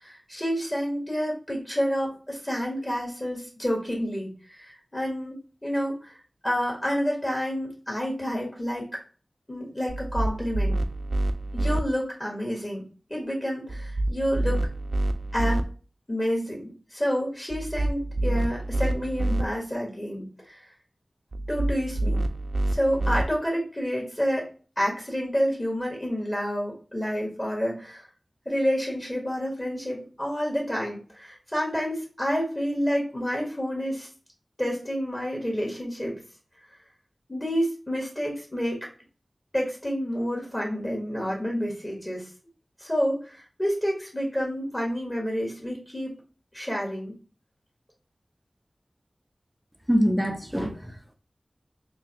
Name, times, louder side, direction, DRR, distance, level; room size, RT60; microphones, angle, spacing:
voice 1, 0.0-4.6 4.9-6.1 6.4-8.9 9.5-10.8 11.5-12.8 13.1-14.6 15.3-15.6 16.1-20.6 21.5-22.2 22.7-24.5 24.8-28.1 28.4-34.1 34.6-36.2 37.3-38.9 39.5-42.3 42.8-46.1 46.5-47.1, equal, 20° left, 1.5 m, -29 dB
sound 1, 9.9-11.8 13.7-15.6 17.5-19.4 21.3-23.2, right 1 dB, 60° right, 0.4 m, -27 dB
voice 2, 49.9-51.1, equal, 5° right, 0.7 m, -25 dB
3.7 x 2.3 x 2.8 m
wide cardioid pair, 45°, 0 cm